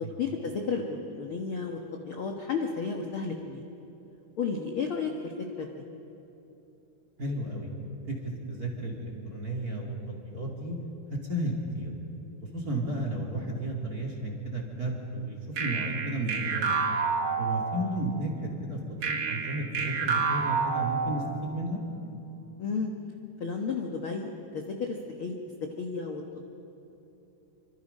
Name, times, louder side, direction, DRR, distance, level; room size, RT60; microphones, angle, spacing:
voice 1, 0.2-3.6 4.4-5.3 5.6-5.8 12.9-13.0 22.6-22.9 23.4-25.3 25.8-26.5, left 5 dB, 75° left, 2 dB, 1.2 m, -33 dB
voice 2, 7.2-7.7 8.1-10.8 11.3-11.9 12.5-16.8 17.4-21.8, right 1 dB, 25° right, 0 dB, 2.3 m, -33 dB
sound 1, 15.6-18.1 19.0-21.5, right 5 dB, 80° right, 1.2 m, -29 dB
26.5 x 25.0 x 5.5 m, 3.0 s
omnidirectional pair, 4.5 m